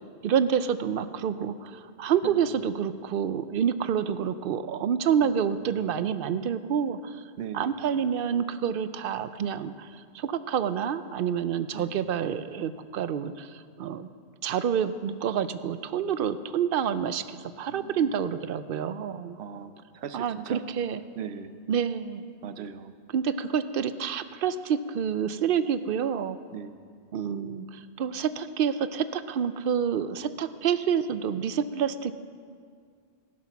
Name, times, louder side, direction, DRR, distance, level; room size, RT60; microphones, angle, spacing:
voice 1, 0.2-7.2 7.5-14.1 14.4-19.4 20.1-21.0 21.7-22.2 23.1-26.4 27.1-32.1, right 8 dB, 65° right, 13 dB, 0.7 m, -28 dB
voice 2, 2.2-2.7 5.2-6.1 7.4-7.7 11.7-12.0 17.7-18.2 19.3-20.7 21.2-21.5 22.4-22.9 26.5-26.8, right 7 dB, 90° right, 11 dB, 0.9 m, -40 dB
17.0 x 7.5 x 5.9 m, 2.1 s
omnidirectional pair, 1.1 m